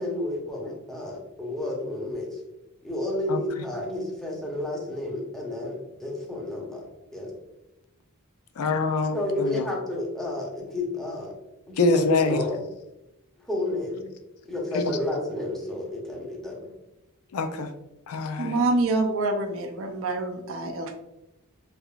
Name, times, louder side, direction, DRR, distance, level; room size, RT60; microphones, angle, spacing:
voice 1, 0.0-2.4 2.8-6.9 7.1-7.3 9.1-11.3 11.7-12.6 13.5-14.1 14.5-16.6, left 1 dB, ahead, -3 dB, 0.8 m, -31 dB
voice 2, 8.6-9.6 11.8-12.4 14.7-15.0 17.3-17.7 18.1-18.6, left 3 dB, 70° left, 7 dB, 0.4 m, -25 dB
voice 3, 18.4-20.9, right 2 dB, 60° right, 5 dB, 0.5 m, -26 dB
3.5 x 3.3 x 2.3 m, 0.92 s
head